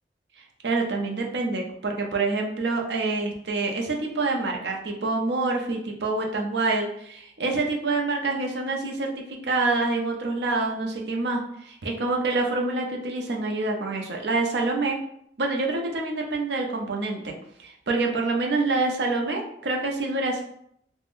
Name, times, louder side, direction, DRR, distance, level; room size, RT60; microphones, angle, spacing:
voice 1, 0.4-15.0 15.4-20.4, right 3 dB, 70° right, 1 dB, 0.5 m, -27 dB
3.6 x 2.0 x 2.5 m, 0.72 s
head